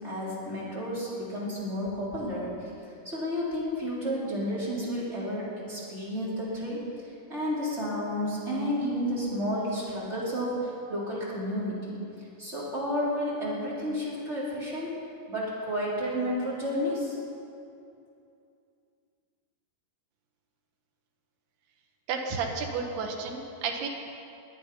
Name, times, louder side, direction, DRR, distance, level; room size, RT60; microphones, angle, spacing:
voice 1, 0.0-2.5 3.0-6.9 7.3-12.0 12.4-14.9 15.3-17.2, equal, 15° right, -7 dB, 3.8 m, -31 dB
voice 2, 22.1-23.9, right 5 dB, 80° right, 2 dB, 3.4 m, -32 dB
21.0 x 9.6 x 5.6 m, 2.6 s
omnidirectional pair, 4.6 m